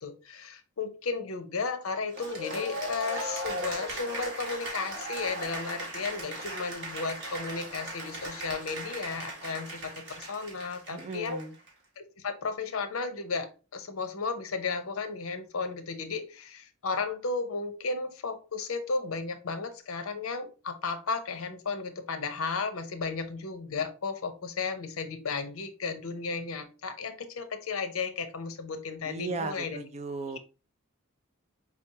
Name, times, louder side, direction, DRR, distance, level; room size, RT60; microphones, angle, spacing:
voice 1, 0.0-11.4 12.0-29.8 30.3-30.4, left 4 dB, 75° left, 9 dB, 0.7 m, -34 dB
Cheering / Applause, 2.1-11.7, right 1 dB, 55° right, 1.5 m, -38 dB
voice 2, 10.9-11.5 29.1-30.4, right 3 dB, 30° right, 8 dB, 0.5 m, -36 dB
4.8 x 3.3 x 2.7 m, 0.32 s
head